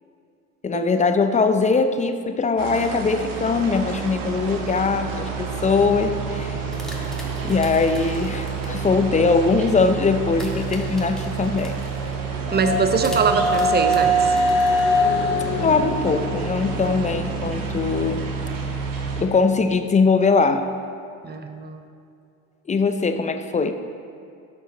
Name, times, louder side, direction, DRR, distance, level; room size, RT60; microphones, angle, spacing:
voice 1, 0.6-6.6 7.4-11.8 15.6-18.2 19.2-20.7 22.7-23.7, left 4 dB, 20° left, 8 dB, 0.5 m, -21 dB
sound 1, 2.6-19.2, right 5 dB, 50° right, 1.5 m, -29 dB
sound 2, 6.5-8.9 10.4-12.2 13.0-15.4, equal, ahead, 1.6 m, -42 dB
sound 3, 11.6-17.5, equal, 35° left, 1.7 m, -23 dB
voice 2, 12.5-14.4 21.2-21.8, right 5 dB, 25° right, 7 dB, 0.8 m, -22 dB
11.0 x 6.5 x 4.1 m, 2.4 s
hypercardioid pair, 80°, 41 cm